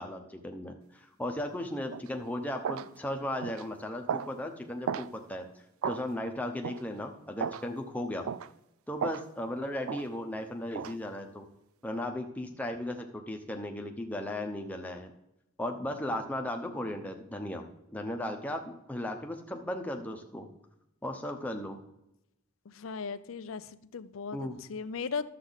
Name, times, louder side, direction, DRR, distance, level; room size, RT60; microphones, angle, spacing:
voice 1, 0.0-5.5 5.9-8.3 8.9-11.5 11.8-15.1 15.6-17.6 17.9-20.5 21.0-21.8 24.3-24.6, left 1 dB, 5° left, 3 dB, 0.9 m, -36 dB
sound 1, 1.9-2.1 2.6-2.9 3.4-3.6 4.1-4.3 4.9-5.1 5.8-6.0 6.6-6.8 7.4-7.6 8.3-8.5 9.0-9.3 9.9-10.1 10.8-11.0, right 7 dB, 90° right, 0.4 m, -34 dB
voice 2, 22.7-25.3, left 5 dB, 80° left, 13 dB, 0.5 m, -37 dB
12.0 x 7.4 x 4.1 m, 0.87 s
head